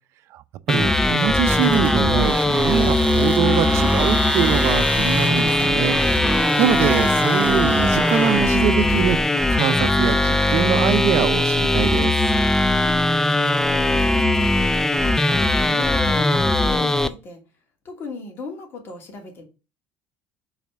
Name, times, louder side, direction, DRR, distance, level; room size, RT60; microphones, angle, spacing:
sound 1, 0.7-17.1, left 2 dB, 10° left, 0.4 m, -19 dB
voice 1, 0.7-9.2 9.5-12.1, right 11 dB, 60° right, 0.6 m, -24 dB
sound 2, 1.5-9.0, right 5 dB, 25° right, 0.7 m, -29 dB
voice 2, 12.7-14.4 15.0-17.4 17.8-19.4, left 4 dB, 45° left, 2.5 m, -37 dB
5.7 x 4.1 x 6.2 m
cardioid pair, 120°, 5 cm